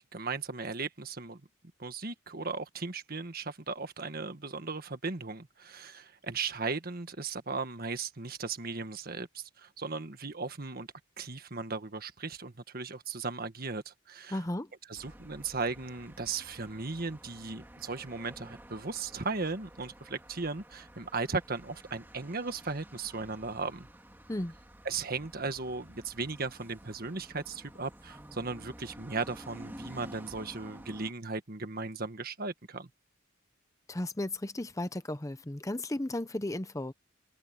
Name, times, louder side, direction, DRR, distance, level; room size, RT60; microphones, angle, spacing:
voice 1, 0.0-1.4 1.8-10.9 11.2-14.4 14.9-23.9 24.8-32.9, right 4 dB, 50° right, 1.6 m, -37 dB
voice 2, 14.3-14.7 24.3-24.5 33.9-36.9, left 1 dB, 15° left, 0.8 m, -34 dB
sound 1, 15.0-31.1, right 1 dB, 10° right, 2.2 m, -51 dB
head